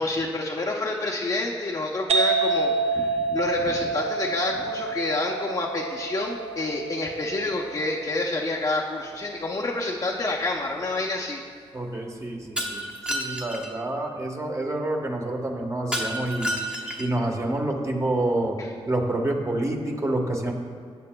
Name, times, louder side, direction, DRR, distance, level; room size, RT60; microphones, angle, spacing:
voice 1, 0.0-11.4 11.9-12.0 18.6-18.7, left 2 dB, 35° left, -2 dB, 0.7 m, -28 dB
sound 1, 2.1-9.5, right 4 dB, 80° right, 0.6 m, -28 dB
voice 2, 11.7-16.5 17.0-18.6 18.9-20.5, right 1 dB, 30° right, 1 dB, 1.2 m, -28 dB
Shatter, 12.6-13.7 15.9-17.2, equal, 10° right, 1.0 m, -30 dB
15.0 x 7.6 x 2.3 m, 2.2 s
cardioid pair, 85°, 10 cm